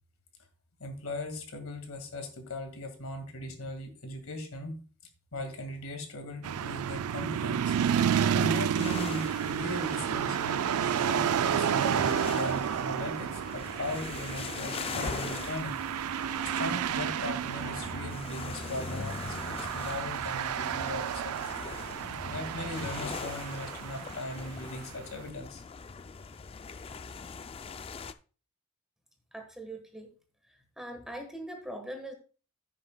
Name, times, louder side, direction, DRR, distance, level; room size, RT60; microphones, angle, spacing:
voice 1, 0.8-4.7 5.3-7.8 8.3-15.7 16.5-21.8 22.3-25.6, left 1 dB, 75° left, 5 dB, 1.9 m, -39 dB
sound 1, 6.4-24.9, right 8 dB, 85° right, 0.4 m, -31 dB
sound 2, 8.8-28.1, left 5 dB, 25° left, 0.3 m, -41 dB
voice 2, 29.3-30.1 30.5-32.1, right 1 dB, ahead, 4 dB, 1.3 m, -41 dB
15.0 x 6.6 x 2.2 m, 0.37 s
head